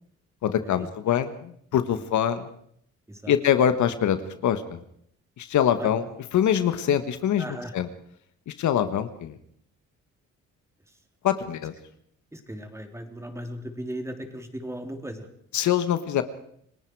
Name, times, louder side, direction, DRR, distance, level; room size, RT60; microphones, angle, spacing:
voice 1, 0.4-2.5 3.3-4.8 5.4-6.0 6.3-7.5 7.7-7.9 8.5-9.3 11.2-11.7 15.5-16.2, left 9 dB, 70° left, 10 dB, 1.5 m, -24 dB
voice 2, 7.4-7.7 12.3-15.3, right 1 dB, 10° right, 5 dB, 3.6 m, -37 dB
29.5 x 18.5 x 4.8 m, 0.68 s
cardioid pair, 90°, 30 cm